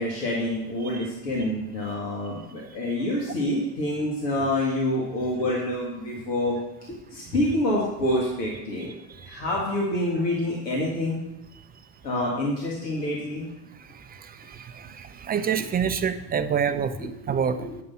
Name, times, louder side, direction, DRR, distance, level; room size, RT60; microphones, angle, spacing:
voice 1, 0.0-6.6 7.1-8.9 9.2-11.2 12.0-13.4 17.0-17.1 17.6-17.8, left 1 dB, 80° left, -3 dB, 1.9 m, -27 dB
voice 2, 14.6-17.6, right 7 dB, 20° right, 10 dB, 0.4 m, -27 dB
9.5 x 5.4 x 5.5 m, 0.89 s
hypercardioid pair, 80°, 47 cm